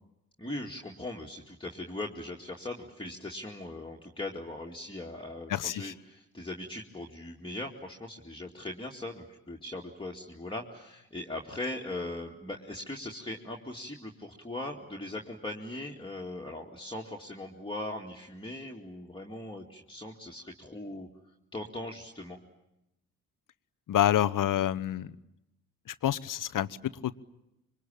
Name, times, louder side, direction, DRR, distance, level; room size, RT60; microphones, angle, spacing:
voice 1, 0.4-21.1 21.5-22.4, left 1 dB, 10° left, -1 dB, 2.6 m, -40 dB
voice 2, 5.5-5.9 23.9-25.1 25.9-26.7 27.0-27.1, left 11 dB, 45° left, 14 dB, 1.0 m, -27 dB
26.5 x 24.0 x 8.8 m, 0.89 s
figure-of-eight pair, 40°, 44 cm